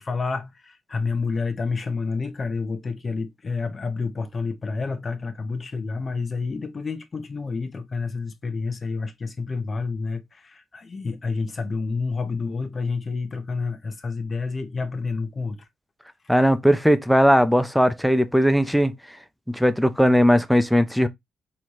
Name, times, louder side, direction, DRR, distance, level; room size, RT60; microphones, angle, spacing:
voice 1, 0.0-15.7, left 4 dB, 35° left, 0.9 m, -29 dB
voice 2, 16.3-18.9 19.5-21.1, equal, ahead, 0.5 m, -18 dB
4.1 x 3.2 x 3.0 m
cardioid pair, 90°, 0 cm